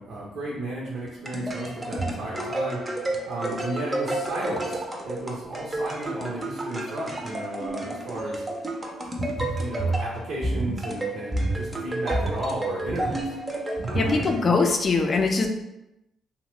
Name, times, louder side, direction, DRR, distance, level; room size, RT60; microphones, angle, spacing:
voice 1, 0.0-2.8 3.2-8.4 8.9-13.3 13.9-14.3, right 1 dB, 70° right, -5 dB, 0.6 m, -34 dB
sound 1, 1.0-14.8, right 1 dB, 20° right, 0.5 m, -30 dB
voice 2, 13.9-15.5, left 4 dB, 40° left, 4 dB, 0.4 m, -22 dB
2.8 x 2.0 x 3.1 m, 0.90 s
cardioid pair, 90°, 0 cm